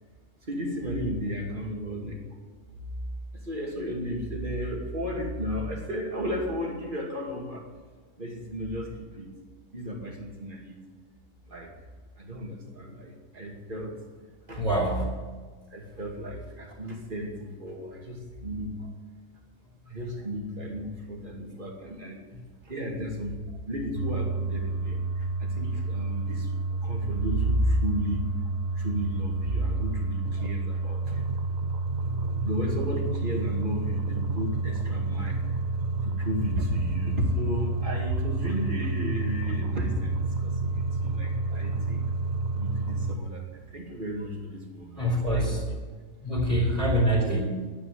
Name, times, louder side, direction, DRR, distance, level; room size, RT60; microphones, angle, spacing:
voice 1, 0.4-2.2 3.3-7.7 8.2-9.3 9.7-10.8 11.5-11.7 12.2-13.9 14.5-14.7 15.7-18.8 19.9-22.2 22.6-23.4 23.7-31.3 32.4-35.6 36.0-42.0 42.5-45.7 46.3-46.9, equal, 35° right, 0 dB, 2.6 m, -33 dB
voice 2, 14.6-15.0 32.1-32.2 45.0-45.6 46.2-47.7, equal, 25° left, -6 dB, 3.4 m, -25 dB
sound 1, 23.9-43.2, right 3 dB, 60° right, 1.6 m, -29 dB
11.0 x 9.1 x 9.9 m, 1.4 s
omnidirectional pair, 1.6 m